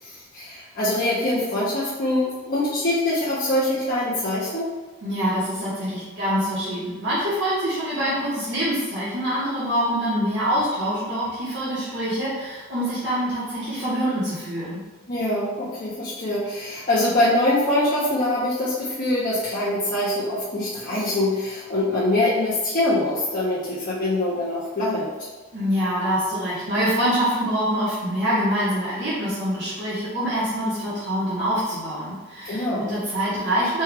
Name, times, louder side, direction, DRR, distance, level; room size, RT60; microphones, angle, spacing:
voice 1, 0.0-4.7 15.1-25.3 32.5-32.8, left 1 dB, 45° left, -9 dB, 0.7 m, -24 dB
voice 2, 5.0-14.8 25.5-33.8, equal, 55° right, -10 dB, 1.1 m, -25 dB
4.4 x 2.3 x 3.3 m, 1.3 s
head